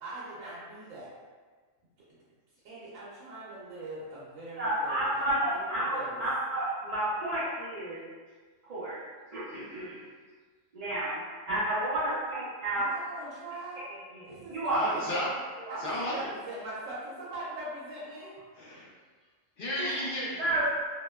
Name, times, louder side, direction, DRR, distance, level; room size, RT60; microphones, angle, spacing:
voice 1, 0.0-1.1 2.6-5.2 5.5-6.2 12.7-13.8 14.3-15.2 15.7-18.3, right 2 dB, 85° right, -8 dB, 1.0 m, -41 dB
voice 2, 4.6-8.0 8.6-9.0 9.3-10.0 10.7-12.9 13.2-13.3 13.8-14.8 15.7-15.8 19.8-20.0 20.4-20.7, right 1 dB, 55° right, -11 dB, 0.4 m, -31 dB
voice 3, 14.7-16.3 18.6-18.9 19.6-20.5, left 1 dB, 55° left, -7 dB, 0.6 m, -34 dB
2.7 x 2.0 x 2.2 m, 1.5 s
omnidirectional pair, 1.3 m